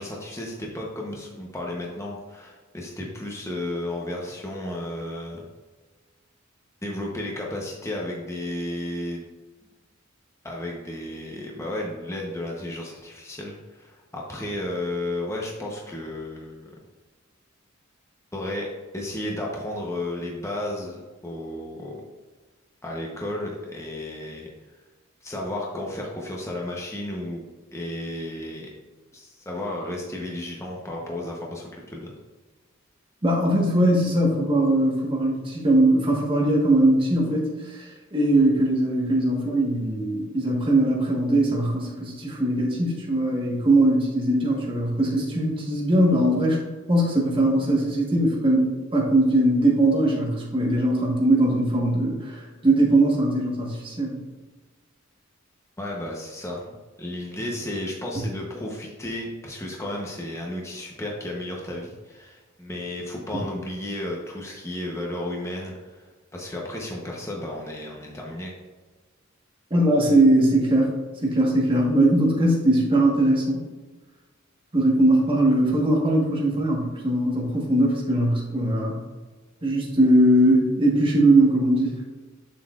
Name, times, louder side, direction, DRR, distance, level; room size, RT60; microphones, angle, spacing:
voice 1, 0.0-5.4 6.8-9.2 10.4-16.8 18.3-22.0 22.8-24.5 25.2-27.4 27.7-28.7 29.1-32.1 55.8-66.1 66.3-68.5, left 1 dB, 15° left, -2 dB, 0.9 m, -33 dB
voice 2, 33.2-46.6 46.9-48.7 48.9-54.2 69.7-70.9 71.2-73.6 74.7-79.0 79.6-81.9, right 1 dB, 25° right, -3 dB, 1.3 m, -20 dB
7.3 x 7.1 x 2.4 m, 1.3 s
head